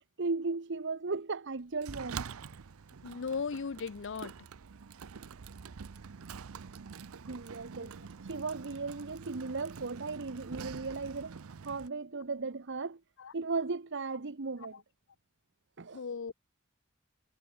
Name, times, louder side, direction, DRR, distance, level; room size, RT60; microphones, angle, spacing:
voice 1, 0.0-2.3 7.3-8.0 8.3-11.4 11.6-13.0 13.3-14.8 15.8-16.0, right 4 dB, 55° right, 0.9 m, -36 dB
Sliding door, 1.8-11.9, right 6 dB, 80° right, 0.6 m, -46 dB
voice 2, 3.0-4.3 13.2-13.3 15.9-16.3, left 5 dB, 60° left, 0.6 m, -37 dB
head